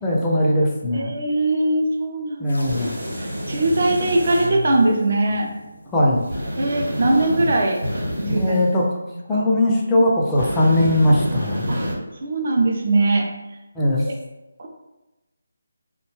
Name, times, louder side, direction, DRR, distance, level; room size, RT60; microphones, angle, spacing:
voice 1, 0.0-1.1 2.4-3.0 5.9-6.3 8.2-8.9 9.3-11.7 13.7-14.0, left 1 dB, 10° left, -4 dB, 0.4 m, -19 dB
voice 2, 0.9-2.7 3.2-5.5 6.6-7.8 8.3-8.6 9.1-9.5 11.7-11.8 12.2-13.3 14.0-14.2 14.6-14.7, right 2 dB, 50° right, 1 dB, 0.5 m, -21 dB
sound 1, 2.5-6.7, left 2 dB, 85° left, 0.4 m, -37 dB
sound 2, 2.6-4.5 6.3-8.6 10.4-11.9, equal, 75° right, 1.1 m, -27 dB
2.5 x 2.2 x 3.0 m, 1.0 s
figure-of-eight pair, 160°, 0 cm